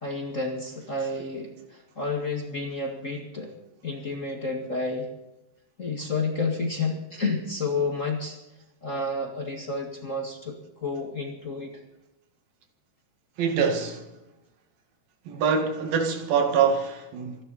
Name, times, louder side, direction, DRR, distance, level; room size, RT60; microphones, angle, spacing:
voice 1, 0.0-3.6 3.8-5.1 5.8-8.4 8.8-10.6 10.8-11.8, left 3 dB, 30° left, 1.9 m, -30 dB
voice 2, 13.4-14.0 15.3-17.4, right 6 dB, 90° right, 3.8 m, -25 dB
26.5 x 11.5 x 4.3 m
omnidirectional pair, 4.0 m